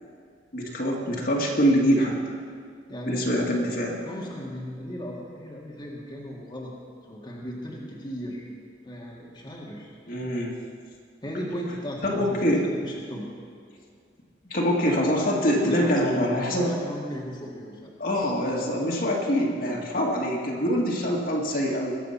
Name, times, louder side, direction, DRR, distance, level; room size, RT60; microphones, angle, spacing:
voice 1, 0.5-2.3 3.1-4.0 10.1-10.5 12.0-12.7 14.5-16.7 18.0-21.9, equal, 55° left, -2 dB, 2.0 m, -24 dB
voice 2, 2.9-3.3 4.0-6.7 7.0-8.5 8.8-9.9 11.2-13.3 15.6-18.5 19.7-19.8, equal, 25° left, -3 dB, 1.8 m, -36 dB
21.5 x 7.5 x 5.8 m, 2.1 s
head